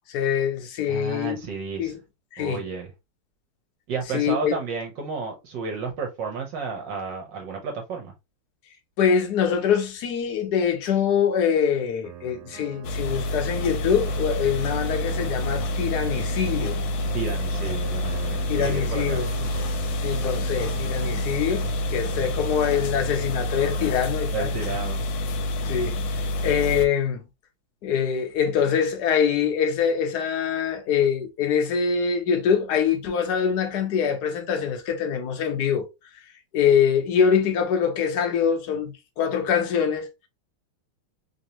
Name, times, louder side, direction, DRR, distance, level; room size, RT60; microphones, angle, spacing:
voice 1, 0.1-1.4 1.8-2.0 2.3-2.6 4.1-4.5 9.0-16.8 18.5-19.3 20.0-24.5 25.7-26.0 26.4-27.2 27.8-35.9 36.5-40.1, left 7 dB, 65° left, 1.1 m, -24 dB
voice 2, 0.9-1.9 2.4-2.9 3.9-8.1 17.1-19.5 24.3-25.1, right 5 dB, 65° right, 1.3 m, -32 dB
sound 1, 12.0-24.1, right 8 dB, 85° right, 1.4 m, -40 dB
sound 2, 12.8-26.9, left 1 dB, 80° left, 1.4 m, -28 dB
3.3 x 2.7 x 2.8 m
omnidirectional pair, 2.3 m